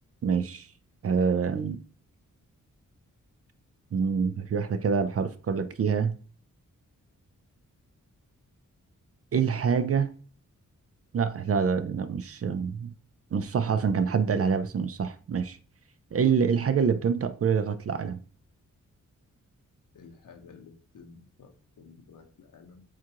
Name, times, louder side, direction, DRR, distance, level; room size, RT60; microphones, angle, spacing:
voice 1, 0.2-0.7 1.0-1.8 3.9-6.2 9.3-10.1 11.1-12.9 13.3-15.6 16.1-18.2, right 6 dB, 50° right, 0.4 m, -26 dB
voice 2, 19.9-22.8, left 5 dB, 75° left, 0.9 m, -52 dB
7.3 x 2.5 x 2.9 m
wide cardioid pair, 95°, 32 cm